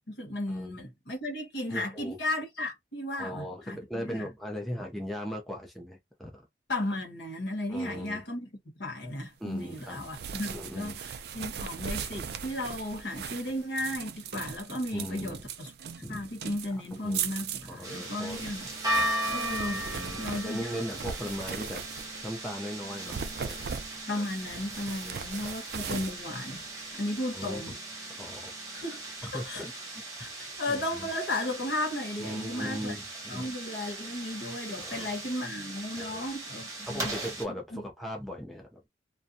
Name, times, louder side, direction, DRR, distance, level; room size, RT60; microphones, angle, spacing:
voice 1, 0.1-4.3 6.7-8.5 8.7-18.7 19.3-19.8 20.2-20.8 24.1-26.6 26.9-27.8 28.7-29.0 29.3-29.6 30.2-30.3 30.6-32.9 33.3-37.1 37.7-37.8, left 1 dB, 70° left, 1.2 m, -35 dB
voice 2, 1.7-2.2 3.2-6.5 7.7-8.2 9.4-10.0 10.5-11.0 14.9-15.4 16.0-16.3 17.0-18.4 19.7-21.8 22.2-23.7 25.0-25.5 25.8-26.1 27.3-27.7 28.2-28.6 29.2-29.7 30.7-31.1 32.2-33.0 33.3-33.5 34.8-35.1 35.9-36.2 36.9-38.9, equal, ahead, 0.5 m, -39 dB
sound 1, 9.7-22.4 22.9-27.2, right 7 dB, 60° right, 0.3 m, -39 dB
sound 2, 17.8-37.4, right 1 dB, 20° right, 0.8 m, -38 dB
2.5 x 2.2 x 2.6 m
head